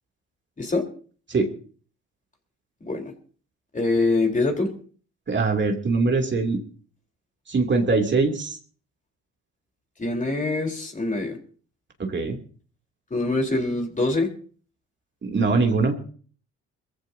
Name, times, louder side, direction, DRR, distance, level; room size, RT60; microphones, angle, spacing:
voice 1, 2.8-3.1 3.7-4.7 10.0-11.4 13.1-14.3, left 2 dB, 25° left, 2 dB, 4.2 m, -24 dB
voice 2, 5.3-6.6 7.5-8.6 12.0-12.4 15.2-16.0, right 3 dB, 40° right, 3 dB, 3.1 m, -22 dB
22.5 x 15.0 x 2.8 m, 0.43 s
supercardioid pair, 65°, 29 cm